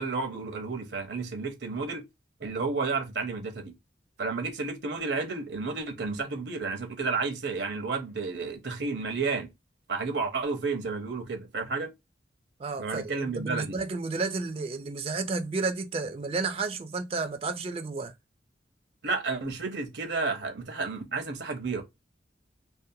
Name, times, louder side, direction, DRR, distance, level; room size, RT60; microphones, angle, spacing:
voice 1, 0.0-2.0 2.4-3.7 4.2-9.5 9.9-11.9 12.8-13.8 19.0-21.8, right 4 dB, 75° right, 0.8 m, -31 dB
voice 2, 12.6-18.1, right 3 dB, 35° right, 0.3 m, -32 dB
2.6 x 2.1 x 2.6 m
head